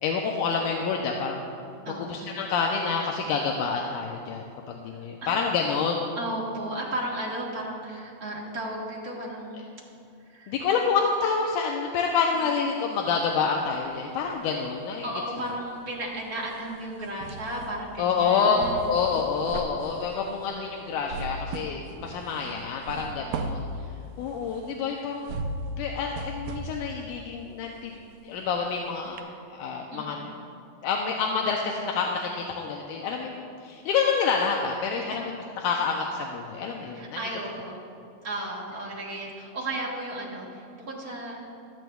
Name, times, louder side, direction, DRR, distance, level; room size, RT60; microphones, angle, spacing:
voice 1, 0.0-1.4 1.9-6.1 10.5-15.1 18.0-18.6 18.9-23.6 24.2-25.4 25.8-29.2 29.5-30.2 30.8-35.3 35.6-37.2, left 5 dB, 80° left, 0 dB, 2.1 m, -28 dB
voice 2, 1.8-2.2 5.2-5.4 6.2-9.6 10.3-10.6 12.3-12.5 15.0-19.0 23.0-23.5 29.9-30.3 35.0-35.1 36.9-37.8 38.2-41.5, right 1 dB, 55° right, -4 dB, 1.0 m, -34 dB
sound 1, 13.6-14.7 15.0-28.8 29.2-29.3, right 1 dB, 80° right, 1.6 m, -38 dB
16.5 x 12.0 x 2.3 m, 2.4 s
omnidirectional pair, 3.7 m